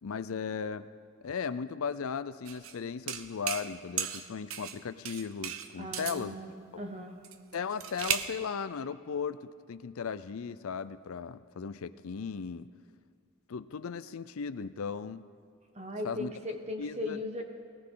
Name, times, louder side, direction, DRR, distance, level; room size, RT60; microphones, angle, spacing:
voice 1, 0.0-0.9 1.2-6.4 7.5-12.7 13.5-15.2 16.0-16.3 16.8-17.2, left 6 dB, 75° left, 13 dB, 0.5 m, -36 dB
sound 1, 2.5-2.8 3.1-3.7 4.0-4.8 5.1-6.2 7.2-8.4, right 9 dB, 75° right, 0.7 m, -35 dB
voice 2, 5.8-7.2 15.7-17.4, left 1 dB, 30° right, 4 dB, 1.3 m, -38 dB
19.0 x 18.0 x 3.9 m, 2.1 s
head